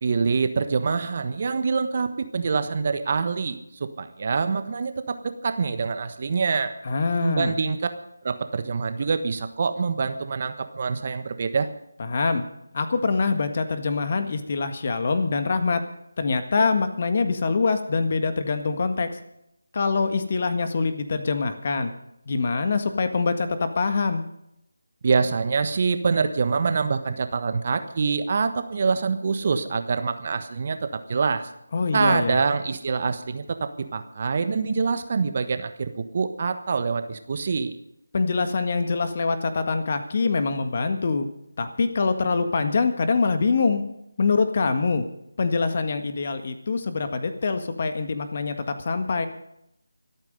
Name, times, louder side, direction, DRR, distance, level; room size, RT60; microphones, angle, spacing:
voice 1, 0.0-6.7 7.2-7.8 8.2-11.7 25.0-31.5 31.9-37.8, right 5 dB, 40° right, 9 dB, 1.3 m, -25 dB
voice 2, 6.8-7.6 12.0-12.4 12.7-15.8 16.2-19.1 19.7-21.9 22.3-24.2 31.7-32.4 38.1-41.3 41.6-43.8 44.2-45.1 45.4-49.3, left 4 dB, 40° left, 8 dB, 1.7 m, -24 dB
25.0 x 9.0 x 5.3 m, 0.79 s
figure-of-eight pair, 160°, 0 cm